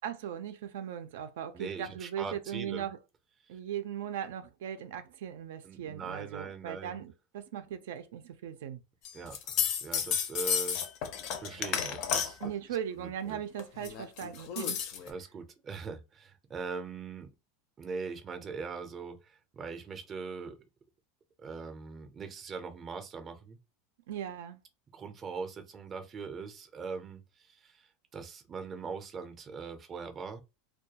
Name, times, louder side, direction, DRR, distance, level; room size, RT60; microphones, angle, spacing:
voice 1, 0.0-3.0 3.5-8.8 12.4-14.8 24.1-24.6, right 9 dB, 80° right, 0.4 m, -38 dB
voice 2, 1.5-2.9 3.5-3.6 5.6-7.0 9.1-10.8 11.4-12.4 13.0-13.4 15.1-17.3 17.8-20.6 21.4-23.6 24.9-30.4, right 5 dB, 20° right, 0.5 m, -41 dB
sound 1, 9.0-12.5 13.6-15.1, left 8 dB, 50° left, 0.5 m, -32 dB
2.2 x 2.2 x 2.8 m
supercardioid pair, 150°, 0 cm